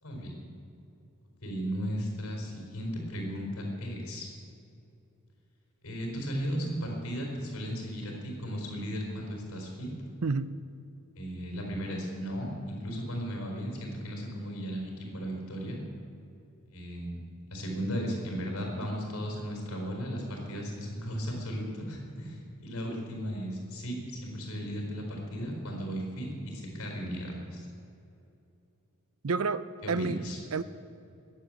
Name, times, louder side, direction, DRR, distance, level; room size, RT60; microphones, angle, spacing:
voice 1, 0.0-0.3 1.4-4.3 5.8-9.9 11.2-15.8 16.7-17.2 17.5-27.7 29.8-30.4, equal, 70° left, 0 dB, 4.4 m, -35 dB
voice 2, 10.2-10.6 29.2-30.2 30.5-30.6, right 4 dB, 75° right, 15 dB, 0.6 m, -29 dB
21.0 x 7.7 x 7.7 m, 2.7 s
head